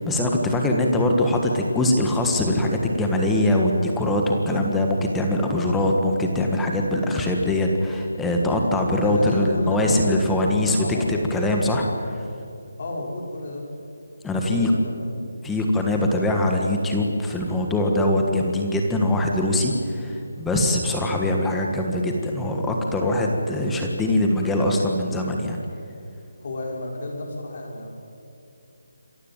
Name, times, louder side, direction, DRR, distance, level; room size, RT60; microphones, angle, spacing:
voice 1, 0.0-12.3 14.2-14.7 15.4-25.6, left 1 dB, 5° left, 1 dB, 1.5 m, -22 dB
voice 2, 8.5-11.1 12.6-13.7 14.5-15.1 26.4-27.9, left 1 dB, 50° left, 0 dB, 6.1 m, -32 dB
27.0 x 15.0 x 9.1 m, 2.6 s
figure-of-eight pair, 165°, 0 cm